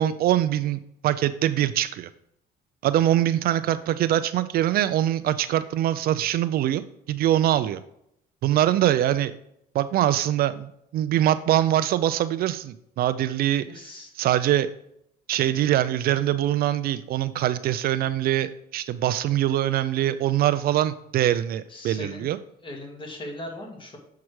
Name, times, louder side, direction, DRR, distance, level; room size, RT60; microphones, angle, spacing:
voice 1, 0.0-2.1 2.8-6.8 7.1-7.8 8.4-9.3 9.7-13.7 14.2-14.7 15.3-22.4, right 12 dB, 65° right, 12 dB, 0.4 m, -23 dB
voice 2, 13.7-14.1 15.6-15.7 21.7-22.3 22.6-24.0, left 1 dB, 30° left, 1 dB, 2.1 m, -39 dB
7.3 x 4.7 x 4.7 m, 0.75 s
cardioid pair, 110°, 17 cm